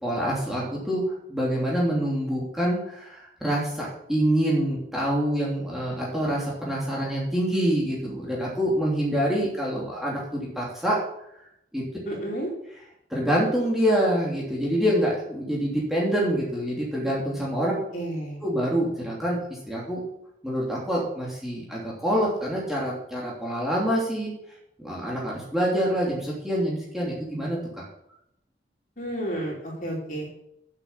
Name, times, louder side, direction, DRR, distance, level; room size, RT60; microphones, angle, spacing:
voice 1, 0.0-11.0 11.7-11.8 13.1-17.7 18.4-20.0 20.4-24.3 24.8-27.8, equal, ahead, -5 dB, 3.0 m, -26 dB
voice 2, 12.1-12.5 17.9-18.4 29.0-30.3, right 1 dB, 45° left, -3 dB, 4.5 m, -31 dB
9.2 x 8.6 x 7.0 m, 0.77 s
head